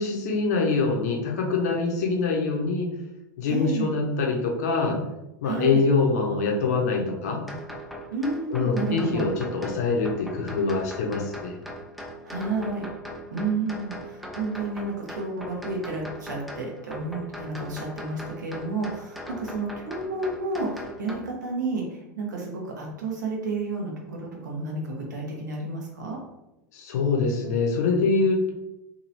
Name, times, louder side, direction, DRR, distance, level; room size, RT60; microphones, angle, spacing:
voice 1, 0.0-2.9 3.4-5.0 5.4-7.4 8.5-11.6 26.7-28.5, left 4 dB, 55° left, 0 dB, 0.7 m, -24 dB
voice 2, 3.5-3.9 5.4-5.8 8.1-9.3 12.2-12.9 13.3-26.2, right 3 dB, 70° right, -1 dB, 0.8 m, -31 dB
sound 1, 7.5-21.2, equal, ahead, 0.4 m, -40 dB
2.9 x 2.6 x 2.6 m, 0.92 s
figure-of-eight pair, 90°, 10 cm